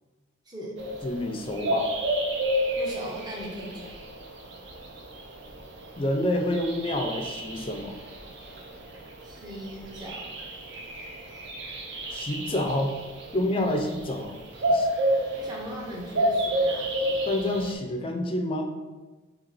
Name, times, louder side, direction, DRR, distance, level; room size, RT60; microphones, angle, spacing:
voice 1, 0.5-0.9 2.8-3.9 9.2-10.3 15.3-16.9, equal, 20° right, -3 dB, 0.6 m, -38 dB
sound 1, 0.8-17.7, right 1 dB, 65° right, 0.5 m, -31 dB
voice 2, 1.0-1.9 6.0-8.0 12.1-12.9 13.3-14.3 14.7-14.9 17.3-18.6, left 1 dB, 25° left, 4 dB, 0.3 m, -28 dB
2.9 x 2.9 x 3.9 m, 1.3 s
head